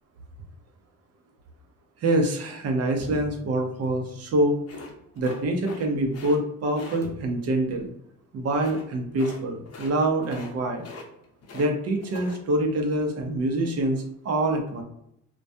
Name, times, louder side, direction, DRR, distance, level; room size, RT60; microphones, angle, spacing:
voice 1, 2.0-4.6 5.2-7.9 8.3-10.8 11.5-14.8, right 1 dB, 55° right, 4 dB, 0.6 m, -25 dB
sound 1, 3.0-4.5 7.0-7.6, left 1 dB, 10° left, 0.4 m, -44 dB
sound 2, 4.7-5.9 6.1-6.4 6.7-7.0 8.5-8.8 9.2-9.4 9.6-9.9 10.2-10.5 10.8-11.7 12.0-12.4, left 4 dB, 55° left, 0.7 m, -42 dB
2.2 x 2.2 x 2.6 m, 0.75 s
cardioid pair, 90°, 30 cm